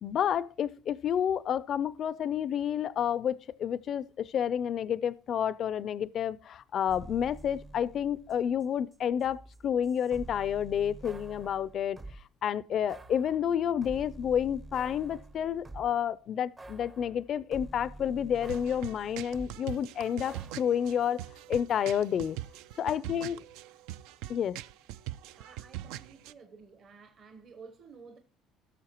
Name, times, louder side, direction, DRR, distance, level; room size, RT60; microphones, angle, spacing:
voice 1, 0.0-12.0 12.4-21.2 21.5-22.4 22.8-23.4 24.3-24.6, left 9 dB, 45° left, 0.4 m, -30 dB
sound 1, 6.9-8.7 8.9-12.2 12.9-16.1 16.6-19.6 20.3-20.5, right 2 dB, 20° right, 0.5 m, -48 dB
sound 2, 18.3-26.3, right 14 dB, 85° right, 0.3 m, -42 dB
voice 2, 25.4-28.2, right 5 dB, 45° right, 0.9 m, -52 dB
17.5 x 6.5 x 2.9 m
cardioid pair, 125°, 0 cm